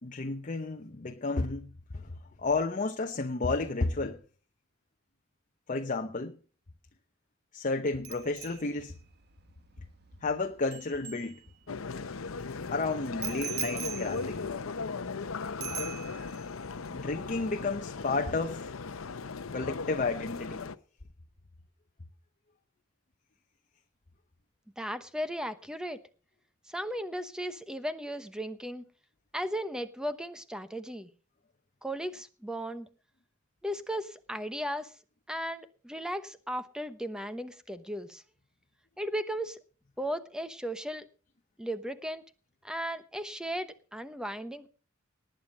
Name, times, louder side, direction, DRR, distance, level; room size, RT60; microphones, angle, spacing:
voice 1, 0.0-4.2 5.7-6.4 7.5-9.0 10.2-11.4 12.7-14.5 16.9-18.7 19.5-20.6, left 3 dB, 40° left, 0.8 m, -32 dB
Bicycle bell, 8.0-11.9 13.2-15.3 15.6-16.5 16.8-17.0, right 9 dB, 55° right, 1.4 m, -42 dB
sound 1, 11.7-20.8, left 4 dB, 85° left, 0.7 m, -37 dB
voice 2, 24.8-26.0 26.7-28.8 29.3-31.1 31.8-32.9 33.6-34.9 35.3-38.2 39.0-39.6 40.0-41.1 41.6-42.2 42.6-44.7, equal, 5° right, 1.0 m, -36 dB
19.0 x 9.1 x 5.3 m
head